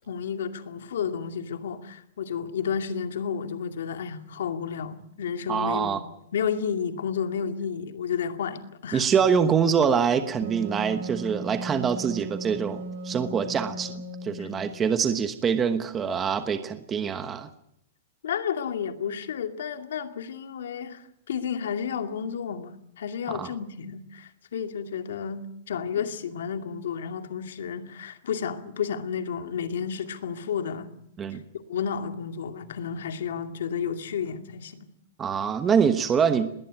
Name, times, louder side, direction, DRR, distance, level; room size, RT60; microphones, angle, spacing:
voice 1, 0.1-6.0 6.3-9.1 18.2-30.9 31.7-34.9, left 7 dB, 80° left, 6 dB, 2.4 m, -31 dB
voice 2, 5.5-6.0 8.9-13.9 14.2-17.5 23.3-23.5 31.2-31.4 35.2-36.6, right 7 dB, 15° right, 9 dB, 1.1 m, -25 dB
Wind instrument woodwind instrument, 10.4-14.8, right 2 dB, 55° right, 2.9 m, -36 dB
20.0 x 18.5 x 9.2 m, 0.75 s
supercardioid pair, 170°, 0 cm